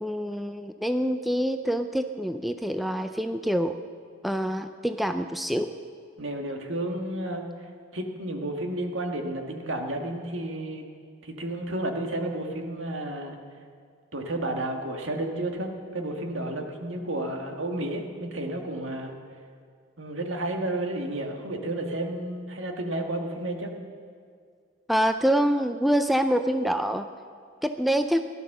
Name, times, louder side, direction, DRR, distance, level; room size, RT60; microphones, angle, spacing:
voice 1, 0.0-3.8 4.2-5.7 24.9-27.1 27.6-28.3, equal, ahead, 8 dB, 0.4 m, -26 dB
voice 2, 6.2-7.5 7.9-10.8 11.2-13.4 14.1-19.2 20.0-23.7, right 1 dB, 75° right, 3 dB, 1.8 m, -31 dB
17.0 x 12.0 x 6.7 m, 2.1 s
head